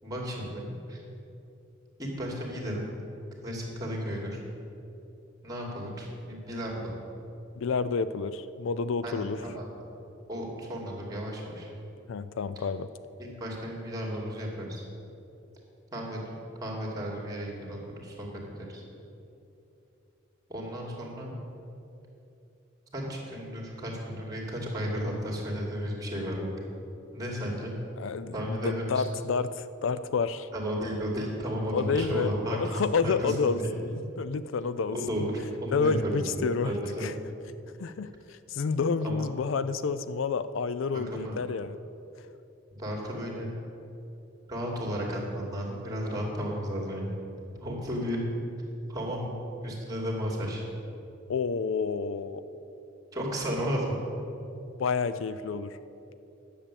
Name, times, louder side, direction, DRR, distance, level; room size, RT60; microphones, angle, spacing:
voice 1, 0.0-1.0 2.0-2.9 3.4-4.4 5.4-6.9 9.0-9.6 10.3-11.7 13.2-14.8 15.9-16.3 16.6-18.3 18.6-18.8 20.5-21.3 22.9-26.5 27.1-27.7 28.3-29.2 30.5-33.7 34.9-35.3 35.6-37.1 39.0-39.2 40.9-41.3 42.7-43.5 44.5-47.2 47.6-48.2 48.9-49.3 49.6-50.7 53.1-54.0, equal, 20° right, -1 dB, 2.5 m, -33 dB
voice 2, 7.6-9.4 12.1-12.9 28.0-30.5 31.7-35.0 35.7-36.7 37.0-37.1 37.8-41.8 51.3-52.4 54.8-55.8, left 5 dB, 70° left, 13 dB, 0.4 m, -29 dB
10.5 x 7.2 x 8.3 m, 2.9 s
head